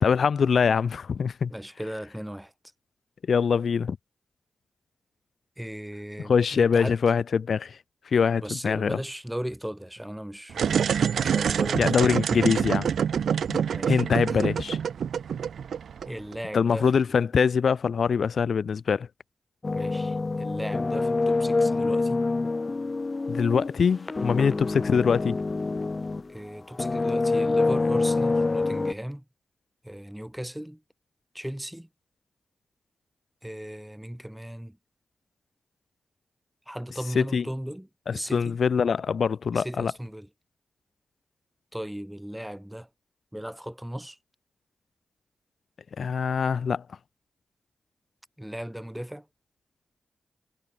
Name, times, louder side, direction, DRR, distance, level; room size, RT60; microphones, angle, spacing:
voice 1, 0.0-1.5 3.3-4.0 6.3-7.8 8.1-9.0 11.7-12.9 13.5-13.6 13.9-14.8 16.5-19.1 23.3-25.4 37.1-37.4 38.1-39.9 46.0-46.8, left 6 dB, 75° left, 1.2 m, -23 dB
voice 2, 1.5-2.5 5.6-7.0 8.4-10.8 11.2-12.1 13.7-14.5 16.1-17.2 19.8-22.2 26.3-29.2 29.8-30.8 31.3-31.9 33.4-34.8 36.7-38.6 39.5-40.3 41.7-42.9 43.3-44.2 48.4-49.3, equal, 5° right, 3.7 m, -37 dB
sound 1, 10.5-16.4, right 7 dB, 85° right, 0.9 m, -26 dB
sound 2, 19.6-26.3 26.7-28.9, left 3 dB, 40° left, 2.0 m, -26 dB
cardioid pair, 45°, 0 cm